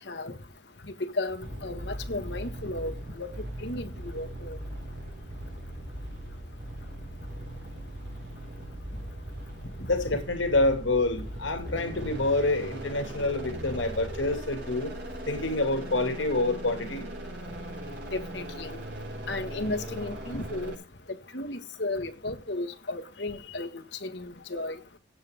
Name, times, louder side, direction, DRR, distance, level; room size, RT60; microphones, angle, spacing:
voice 1, 0.8-3.3 3.6-4.6 18.1-18.8 19.3-20.7 21.3-24.8, left 2 dB, 65° left, 1.6 m, -34 dB
sound 1, 1.4-20.8, right 1 dB, 60° right, 5.8 m, -39 dB
voice 2, 9.9-14.9 15.3-17.1, left 2 dB, 85° left, 2.5 m, -27 dB
17.0 x 7.6 x 3.6 m
head